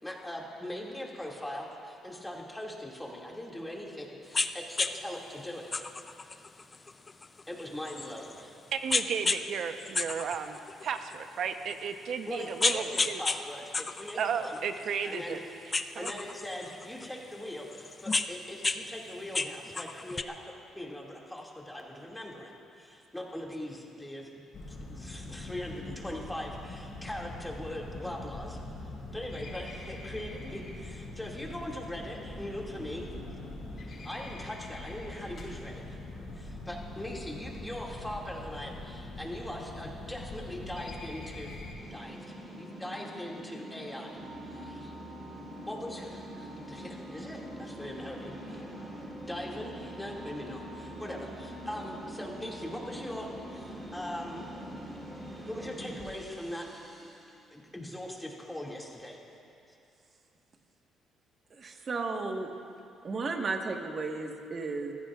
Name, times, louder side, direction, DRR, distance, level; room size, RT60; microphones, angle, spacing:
voice 1, 0.0-5.7 7.5-8.5 12.3-14.6 15.0-15.4 15.8-24.3 24.7-28.6 29.1-33.1 34.0-36.0 36.3-41.5 41.9-44.2 44.5-44.9 45.7-48.6 49.3-54.5 55.5-56.9 57.5-59.2, left 1 dB, 5° left, -3 dB, 2.4 m, -41 dB
sound 1, 4.3-4.5 4.8-4.9 5.7-8.4 8.9-9.4 9.8-11.1 11.7-11.8 12.3-13.4 13.7-15.3 15.7-17.1 17.7-18.8 19.1-20.2, left 3 dB, 25° left, 0.5 m, -31 dB
voice 2, 8.7-13.2 14.2-15.4 15.9-16.1, right 7 dB, 60° right, 7 dB, 0.9 m, -34 dB
sound 2, 24.5-41.7, left 2 dB, 50° left, 4.4 m, -43 dB
sound 3, 41.8-57.4, right 1 dB, 20° right, 3.5 m, -44 dB
voice 3, 61.6-62.5 63.0-64.9, right 3 dB, 40° right, 2 dB, 1.5 m, -34 dB
27.5 x 15.5 x 2.5 m, 2.6 s
cardioid pair, 115°, 0 cm